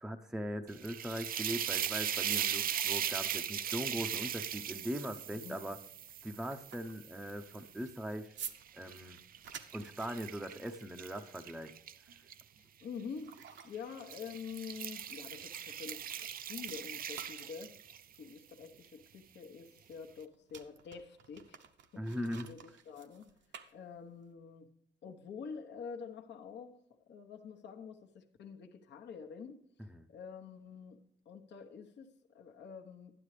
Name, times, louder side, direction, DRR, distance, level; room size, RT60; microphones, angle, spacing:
voice 1, 0.0-5.8 6.2-8.3 8.7-9.2 9.7-11.7 22.0-22.5 29.9-30.0, equal, 5° right, 5 dB, 0.6 m, -40 dB
sound 1, 0.7-7.9 8.4-12.4 13.3-13.6 14.0-18.1, right 9 dB, 45° right, 0.4 m, -39 dB
voice 2, 5.3-5.6 12.6-13.3 13.6-17.7 18.2-21.6 21.9-22.0 22.4-23.3 23.7-24.7 25.0-26.8 27.1-29.6 30.1-31.0 31.2-33.1, left 6 dB, 60° left, 3 dB, 1.0 m, -47 dB
sound 2, 5.9-16.3 16.6-24.3, right 8 dB, 65° right, 0.8 m, -53 dB
11.5 x 9.8 x 3.3 m, 0.70 s
cardioid pair, 90°, 20 cm